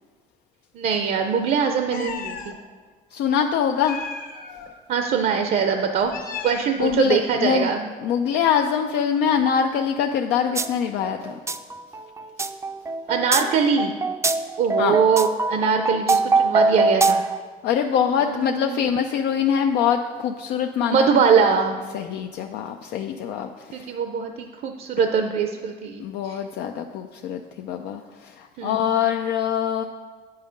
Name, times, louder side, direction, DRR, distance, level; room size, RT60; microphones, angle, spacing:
voice 1, 0.7-2.5 4.9-6.1 6.4-7.9 13.1-13.9 14.6-17.2 18.2-18.9 20.9-21.8 23.7-26.4 28.6-28.9, right 6 dB, 60° right, 5 dB, 0.6 m, -22 dB
Meow, 1.9-2.5 3.8-4.7 5.9-7.1, left 5 dB, 55° left, 1.0 m, -35 dB
voice 2, 3.1-4.0 6.8-7.7 8.0-11.3 14.8-15.0 17.6-21.1 21.9-23.5 23.8-23.9 26.0-28.0 28.4-29.8, left 8 dB, 80° left, 4 dB, 0.4 m, -23 dB
sound 1, 10.6-10.7 11.0-17.4, right 3 dB, 15° right, 0.4 m, -22 dB
8.7 x 5.5 x 5.1 m, 1.5 s
cardioid pair, 110°, 17 cm